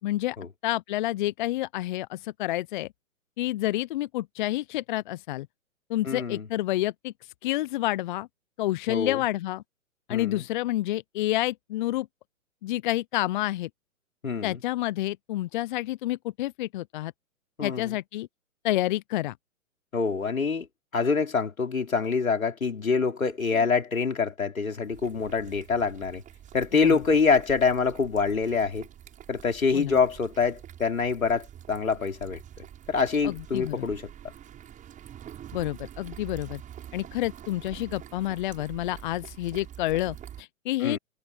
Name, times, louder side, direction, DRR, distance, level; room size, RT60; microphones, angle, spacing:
voice 1, 0.0-0.4 0.6-2.9 3.4-5.5 5.9-7.1 7.4-8.3 8.6-9.6 10.1-12.1 12.6-13.7 14.4-17.1 17.6-18.3 18.6-19.3 23.5-23.6 26.8-26.9 29.7-30.0 33.2-33.9 35.5-36.6 36.9-41.0, left 16 dB, 35° left, 0.8 m, -29 dB
voice 2, 6.0-6.5 8.9-9.2 10.1-10.4 14.2-14.6 17.6-17.9 19.9-20.7 20.9-26.2 26.5-28.9 29.3-32.4 32.9-34.1 40.8-41.0, left 5 dB, 80° left, 4.1 m, -25 dB
sound 1, 24.8-40.4, right 10 dB, 20° right, 7.9 m, -46 dB
figure-of-eight pair, 125°, 41 cm